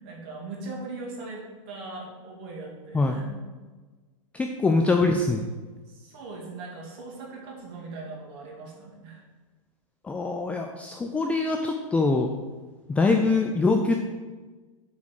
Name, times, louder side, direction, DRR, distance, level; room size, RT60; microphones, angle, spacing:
voice 1, 0.0-3.3 5.9-9.2, right 3 dB, 50° right, -2 dB, 2.5 m, -40 dB
voice 2, 4.3-5.5 10.0-12.3 12.9-14.0, left 3 dB, 10° left, 3 dB, 0.3 m, -23 dB
7.2 x 3.8 x 6.4 m, 1.3 s
hypercardioid pair, 135°, 17 cm